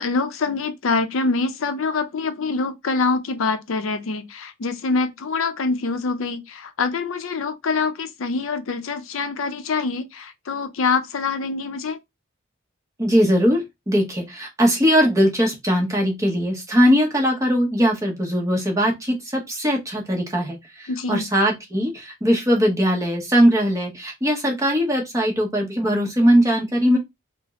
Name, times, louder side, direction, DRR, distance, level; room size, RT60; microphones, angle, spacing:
voice 1, 0.0-12.0 20.9-21.3, left 4 dB, 75° left, 0.5 m, -25 dB
voice 2, 13.0-27.0, equal, 15° right, 0.8 m, -20 dB
3.4 x 2.0 x 3.5 m
head